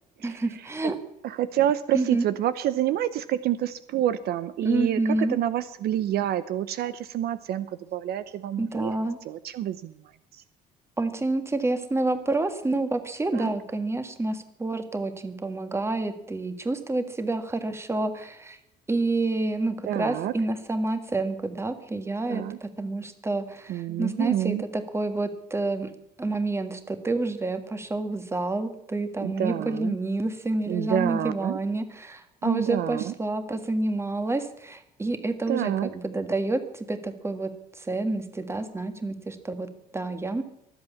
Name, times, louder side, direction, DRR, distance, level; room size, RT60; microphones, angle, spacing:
voice 1, 0.2-1.0 1.9-2.2 4.6-5.4 8.6-9.2 11.0-18.6 18.9-25.9 26.2-40.4, right 2 dB, 15° right, 8 dB, 1.7 m, -28 dB
voice 2, 1.2-5.0 5.3-8.9 9.3-9.9 10.3-10.4 13.3-13.5 19.9-20.3 22.3-22.6 23.7-24.6 29.2-30.0 30.7-31.6 32.4-33.1 35.5-35.9, right 12 dB, 70° right, 14 dB, 0.7 m, -28 dB
23.5 x 8.0 x 7.0 m, 0.79 s
cardioid pair, 110°, 17 cm